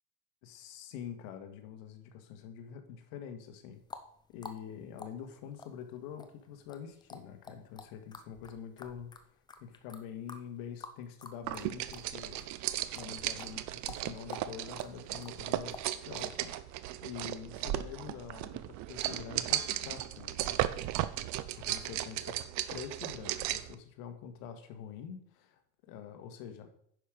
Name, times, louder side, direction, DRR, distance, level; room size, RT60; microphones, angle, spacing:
voice 1, 0.4-3.8 4.3-12.5 12.9-20.6 21.6-22.4 22.7-26.7, left 8 dB, 60° left, 6 dB, 1.7 m, -46 dB
sound 1, 3.7-12.1 12.4-16.3, left 4 dB, 10° left, 0.5 m, -50 dB
sound 2, 11.4-23.7, right 14 dB, 45° right, 0.6 m, -36 dB
9.9 x 6.2 x 5.0 m, 0.66 s
supercardioid pair, 145°, 42 cm